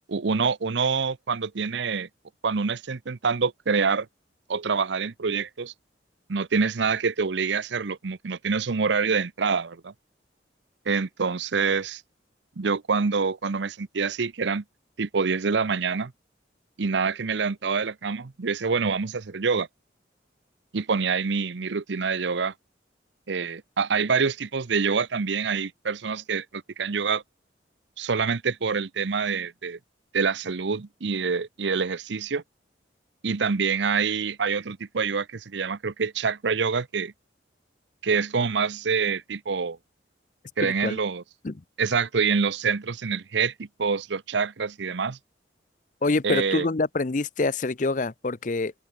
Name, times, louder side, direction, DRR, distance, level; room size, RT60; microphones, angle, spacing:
voice 1, 0.1-2.1 2.4-4.1 4.5-5.7 6.3-9.9 10.9-12.0 12.6-14.6 15.0-16.1 16.8-19.7 20.7-22.5 23.3-27.2 28.0-29.8 30.1-32.4 33.2-37.1 38.0-39.8 40.6-41.2 41.8-45.2 46.2-46.7, right 5 dB, 75° right, 0.7 m, -26 dB
voice 2, 40.6-41.0 41.4-41.5 46.0-48.7, left 3 dB, 45° left, 0.6 m, -26 dB
head